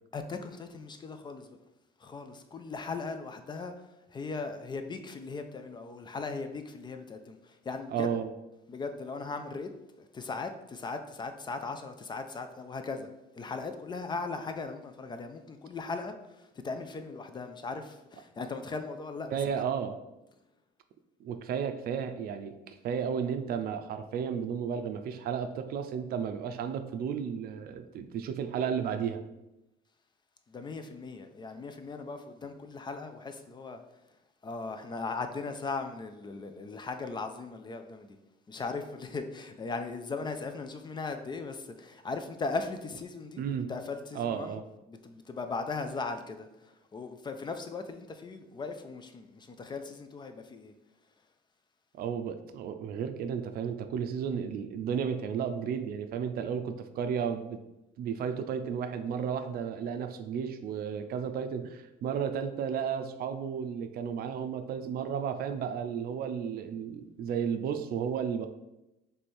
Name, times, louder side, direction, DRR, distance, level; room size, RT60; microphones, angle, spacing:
voice 1, 0.1-1.6 2.0-8.1 8.7-9.7 10.0-13.1 13.4-19.7 30.5-33.8 34.4-38.2 38.5-50.7, left 4 dB, 25° left, 7 dB, 0.4 m, -38 dB
voice 2, 7.9-8.3 19.3-19.9 21.2-29.2 43.4-43.7 44.1-44.6 51.9-57.6 58.0-68.5, right 7 dB, 65° right, 8 dB, 0.5 m, -33 dB
3.3 x 3.2 x 4.3 m, 0.93 s
cardioid pair, 110°, 17 cm